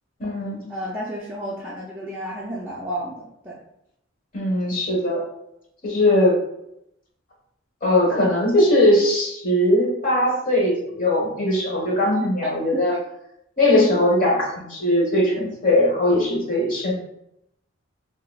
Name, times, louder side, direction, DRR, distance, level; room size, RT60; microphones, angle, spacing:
voice 1, 0.2-0.7 4.3-5.2 5.8-6.4 7.8-13.0 13.6-16.9, left 1 dB, 45° left, -3 dB, 1.2 m, -20 dB
voice 2, 0.7-3.6 12.7-12.8 13.7-13.9, equal, 10° right, -7 dB, 0.5 m, -31 dB
5.8 x 2.0 x 2.3 m, 0.80 s
head